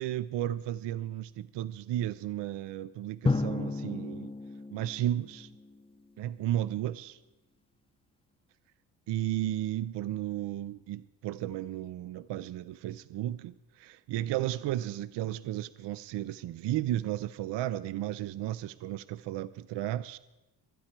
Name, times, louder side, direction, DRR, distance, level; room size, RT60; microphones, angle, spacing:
voice 1, 0.0-4.3 4.7-5.5 6.2-7.2 9.1-20.2, right 13 dB, 65° right, 0.5 m, -34 dB
Drum, 3.2-5.9, left 3 dB, 10° left, 0.6 m, -33 dB
24.0 x 10.0 x 4.5 m
cardioid pair, 140°, 45 cm